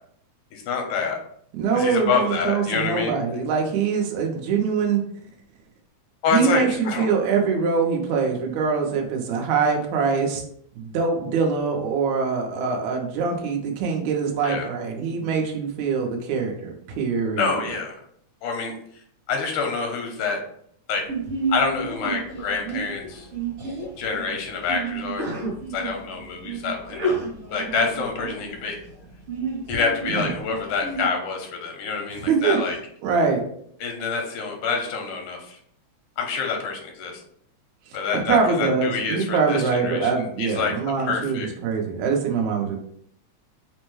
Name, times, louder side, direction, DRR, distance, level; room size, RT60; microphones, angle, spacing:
voice 1, 0.5-1.2 1.7-3.2 6.2-7.1 14.4-14.7 17.4-18.0 18.4-18.7 19.3-20.4 20.9-21.0 21.5-23.3 24.0-25.3 25.7-27.2 27.5-28.8 29.7-32.8 33.8-35.6 36.2-37.2 37.9-40.7 41.0-41.5, left 5 dB, 85° left, 2 dB, 2.2 m, -27 dB
voice 2, 1.5-5.0 6.3-10.4 10.8-17.5 30.1-30.3 32.3-32.6 33.0-33.4 38.1-42.8, right 5 dB, 75° right, 1 dB, 2.0 m, -23 dB
Sneeze, 21.1-31.0, right 3 dB, 60° right, 1.6 m, -31 dB
5.3 x 2.1 x 3.1 m, 0.65 s
omnidirectional pair, 3.5 m